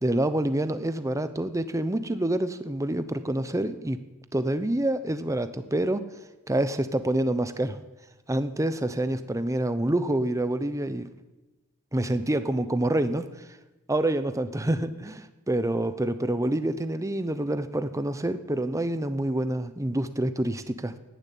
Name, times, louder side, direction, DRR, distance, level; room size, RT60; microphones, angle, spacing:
voice 1, 0.0-4.0 4.3-6.0 6.5-7.8 8.3-11.1 11.9-13.5 13.9-20.9, right 1 dB, 15° right, 11 dB, 0.8 m, -27 dB
13.5 x 11.0 x 9.3 m, 1.1 s
head